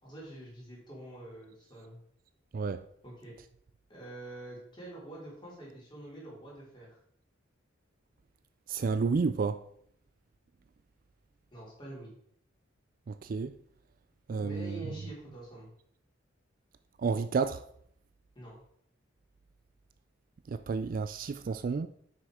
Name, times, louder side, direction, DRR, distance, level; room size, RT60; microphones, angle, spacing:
voice 1, 0.0-2.0 3.0-3.3 3.9-6.9 11.5-12.1 14.4-15.7 18.4-18.5, right 1 dB, 25° left, 3.7 m, -46 dB
voice 2, 8.7-9.6 13.1-13.5 14.3-14.8 17.0-17.6 20.5-21.9, right 4 dB, 45° right, 0.3 m, -30 dB
7.6 x 6.4 x 4.7 m
head